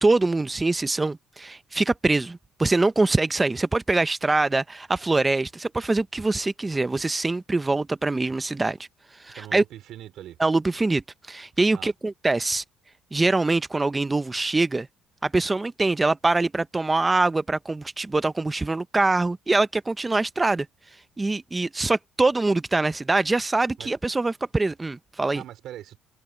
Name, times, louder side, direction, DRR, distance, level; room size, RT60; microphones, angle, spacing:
voice 1, 0.0-8.8 9.2-9.6 10.4-12.6 13.1-14.9 15.2-20.7 21.2-25.4, right 3 dB, 15° right, 0.6 m, -24 dB
voice 2, 9.3-10.4 11.7-11.9 23.8-23.9 25.3-26.0, right 12 dB, 65° right, 3.9 m, -41 dB
open air
cardioid pair, 135°, 0 cm